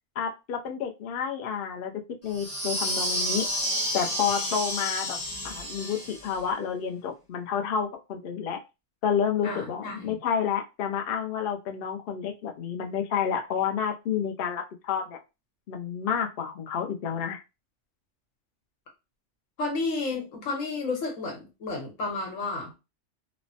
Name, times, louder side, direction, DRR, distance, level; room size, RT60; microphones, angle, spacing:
voice 1, 0.2-1.9 2.2-3.5 3.9-5.2 5.4-8.6 9.0-15.2 15.7-17.4, left 7 dB, 60° left, 4 dB, 0.6 m, -30 dB
sound 1, 2.3-6.4, equal, 15° left, 0.8 m, -30 dB
voice 2, 9.4-10.2 19.6-22.7, left 3 dB, 90° left, 1 dB, 1.4 m, -32 dB
3.0 x 2.0 x 2.6 m, 0.27 s
omnidirectional pair, 1.3 m